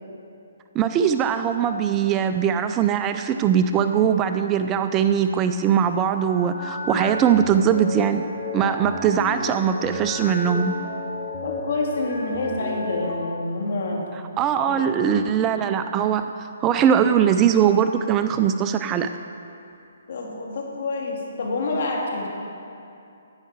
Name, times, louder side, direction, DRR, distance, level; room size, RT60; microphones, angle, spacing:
voice 1, 0.7-8.3 8.5-10.8 14.4-16.3 16.6-19.1, right 8 dB, 20° right, 8 dB, 0.3 m, -21 dB
sound 1, 5.8-13.2, left 2 dB, 25° left, 1.3 m, -33 dB
voice 2, 11.4-14.1 14.6-15.1 20.1-22.3, left 2 dB, 60° left, -1 dB, 2.1 m, -27 dB
10.5 x 9.1 x 4.7 m, 2.6 s
hypercardioid pair, 145°, 0 cm